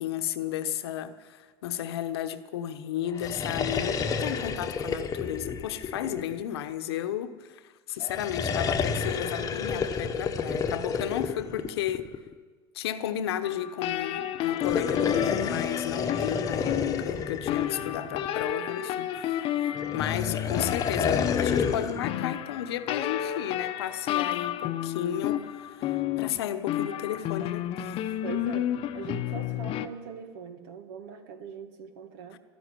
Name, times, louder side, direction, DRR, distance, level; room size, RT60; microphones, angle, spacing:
voice 1, 0.0-12.1 12.7-28.0 32.3-32.4, left 10 dB, 80° left, 1.0 m, -33 dB
sound 1, 3.1-6.7 8.0-12.3 14.5-18.5 19.8-22.1, left 6 dB, 25° left, 1.1 m, -30 dB
sound 2, 13.4-29.9, left 12 dB, 45° left, 0.8 m, -31 dB
voice 2, 28.2-32.4, right 7 dB, 70° right, 1.9 m, -41 dB
13.5 x 10.5 x 9.9 m
supercardioid pair, 110°, 13 cm